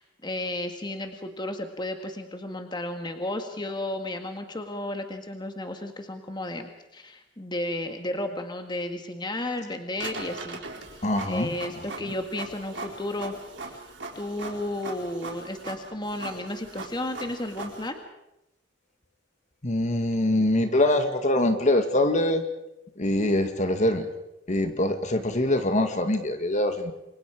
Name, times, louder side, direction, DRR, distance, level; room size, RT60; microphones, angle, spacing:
voice 1, 0.0-10.6 10.9-13.4 13.7-13.8 14.2-18.0, left 1 dB, 25° left, 6 dB, 1.8 m, -33 dB
Printer, 10.0-17.9, right 3 dB, 75° right, 4.1 m, -40 dB
voice 2, 11.0-11.7 19.6-22.4 23.0-24.1 24.5-26.9, left 1 dB, 40° left, 7 dB, 1.9 m, -24 dB
29.0 x 24.0 x 5.0 m, 0.89 s
head